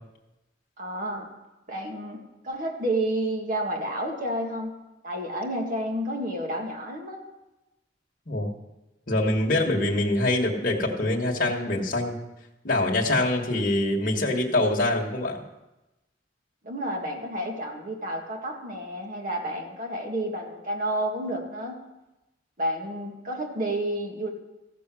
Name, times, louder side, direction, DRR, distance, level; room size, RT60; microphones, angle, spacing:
voice 1, 0.8-1.3 1.7-2.2 2.4-4.7 5.0-7.2 16.6-21.8 22.6-24.3, right 1 dB, 45° right, 2 dB, 1.8 m, -30 dB
voice 2, 9.1-12.2 12.6-15.4, left 1 dB, 50° left, -1 dB, 1.4 m, -24 dB
14.5 x 6.8 x 6.1 m, 1.0 s
head